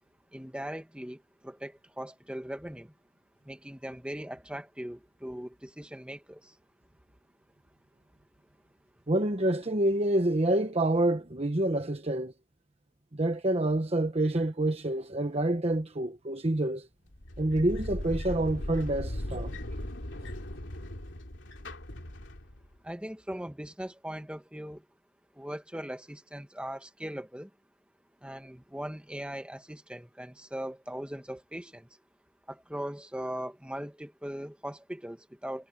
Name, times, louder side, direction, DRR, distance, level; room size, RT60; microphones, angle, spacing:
voice 1, 0.3-2.9 3.4-6.5 22.8-24.8 25.3-27.5 28.2-31.9 32.5-35.7, equal, 5° right, 1.6 m, -40 dB
voice 2, 9.1-12.3 13.1-16.9 17.4-19.5, right 1 dB, 35° right, 1.1 m, -27 dB
sound 1, 17.1-22.7, left 1 dB, 90° left, 2.8 m, -38 dB
head